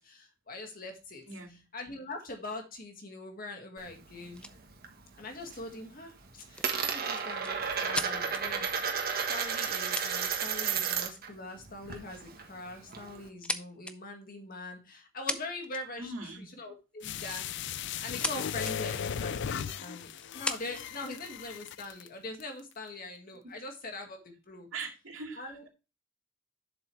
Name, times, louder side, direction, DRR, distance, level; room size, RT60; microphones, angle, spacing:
voice 1, 0.0-1.2 1.7-4.5 5.2-8.7 9.3-17.5 18.0-24.7 25.4-25.7, left 2 dB, 45° left, 4 dB, 1.9 m, -43 dB
voice 2, 1.3-1.6 16.0-16.5 23.4-23.5 24.7-25.6, right 3 dB, 85° right, 2 dB, 2.3 m, -44 dB
Coin (dropping), 3.8-4.9 5.2-5.7 6.0-11.3 11.6-13.3, right 6 dB, 50° right, 1.4 m, -33 dB
sound 1, 4.4-4.6 6.5-8.4 9.5-9.6 9.9-10.7 11.1-11.3 12.3-12.5 12.9-14.0 15.0-15.1 15.3-16.0 17.5-18.3 18.6-18.8 19.4-19.5 20.2-20.9 21.7-22.4, left 1 dB, 5° left, 0.5 m, -37 dB
sound 2, 17.0-22.1 22.4-22.5, left 8 dB, 65° left, 0.4 m, -37 dB
7.5 x 7.0 x 3.3 m, 0.29 s
head